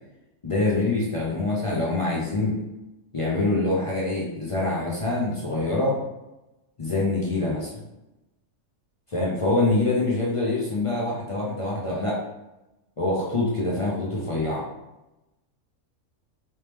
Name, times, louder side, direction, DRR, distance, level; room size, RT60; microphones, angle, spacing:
voice 1, 0.4-2.6 3.1-6.0 6.8-7.8 9.1-12.2 13.0-14.7, left 2 dB, 50° left, -5 dB, 0.3 m, -25 dB
3.0 x 3.0 x 3.4 m, 0.99 s
omnidirectional pair, 1.4 m